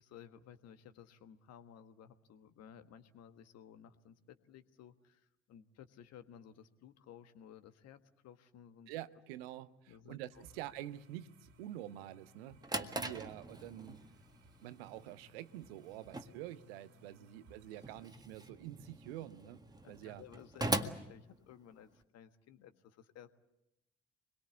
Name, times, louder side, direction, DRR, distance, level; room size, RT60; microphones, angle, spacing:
voice 1, 0.0-8.9 9.9-10.4 19.8-23.3, left 9 dB, 55° left, 1.5 m, -57 dB
voice 2, 8.9-14.0 14.6-19.6 19.9-20.2, right 13 dB, 70° right, 0.9 m, -47 dB
sound 1, 10.3-18.1, left 1 dB, 50° right, 2.3 m, -64 dB
Drawer open or close, 12.3-22.0, right 2 dB, 10° right, 1.7 m, -42 dB
26.5 x 22.0 x 8.3 m
figure-of-eight pair, 45°, 31 cm